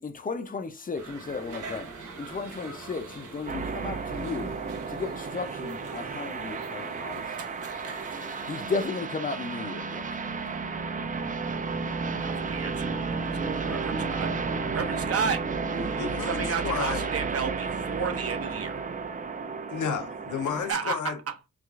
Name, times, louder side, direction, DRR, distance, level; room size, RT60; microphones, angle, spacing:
voice 1, 0.0-1.9 2.2-4.6 4.9-7.3 7.8-7.9 8.5-10.4, left 4 dB, 30° left, 0.5 m, -34 dB
sound 1, 0.9-8.9, right 3 dB, 80° right, 1.1 m, -44 dB
sound 2, 3.5-20.7, right 4 dB, 30° right, 0.4 m, -32 dB
voice 2, 7.3-8.5 12.1-12.9 13.4-14.3 14.7-18.8 20.7-21.5, right 5 dB, 50° right, 0.7 m, -33 dB
voice 3, 15.9-17.1 19.7-21.2, left 7 dB, 85° left, 0.8 m, -32 dB
4.6 x 2.4 x 2.4 m
wide cardioid pair, 145°, 30 cm